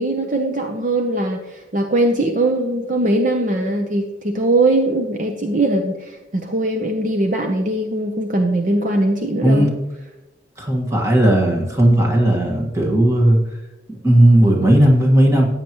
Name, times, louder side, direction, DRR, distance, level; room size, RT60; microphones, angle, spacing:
voice 1, 0.0-9.7, right 2 dB, 40° right, 3 dB, 0.8 m, -20 dB
voice 2, 10.6-13.4 13.9-15.5, right 1 dB, 15° right, 0 dB, 1.7 m, -15 dB
14.0 x 9.0 x 3.0 m, 1.0 s
head